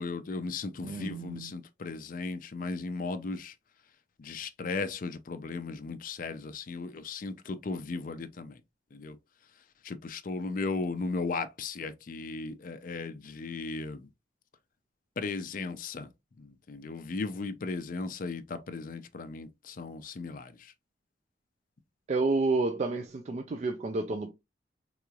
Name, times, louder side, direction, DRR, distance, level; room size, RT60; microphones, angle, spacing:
voice 1, 0.0-3.5 4.2-8.6 8.9-9.2 9.8-14.1 15.2-16.1 16.4-20.7, left 3 dB, 50° left, 0.4 m, -36 dB
voice 2, 0.8-1.5 22.1-24.3, right 3 dB, 40° right, 0.3 m, -30 dB
3.8 x 3.0 x 2.3 m
head